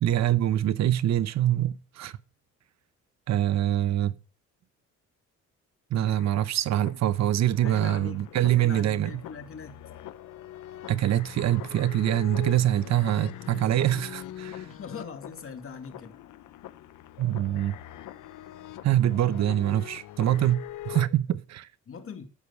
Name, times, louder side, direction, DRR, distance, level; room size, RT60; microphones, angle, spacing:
voice 1, 0.0-2.1 3.3-4.2 5.9-9.2 10.9-14.7 17.2-17.8 18.8-21.7, right 12 dB, 60° right, 0.8 m, -24 dB
sound 1, 6.1-21.1, left 12 dB, 85° left, 1.0 m, -43 dB
voice 2, 7.6-9.8 14.6-16.2 21.9-22.2, left 5 dB, 45° left, 2.3 m, -41 dB
14.0 x 4.8 x 8.2 m
cardioid pair, 90°, 30 cm